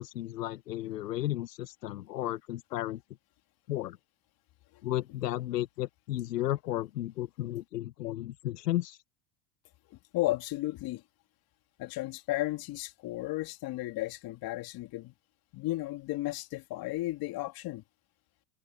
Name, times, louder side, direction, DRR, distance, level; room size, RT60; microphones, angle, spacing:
voice 1, 0.0-3.0 3.7-4.0 4.8-9.0, left 14 dB, 85° left, 1.3 m, -33 dB
voice 2, 9.9-11.0 11.8-15.1 15.5-17.8, left 17 dB, 50° left, 2.7 m, -34 dB
open air
hypercardioid pair, 95°, 48 cm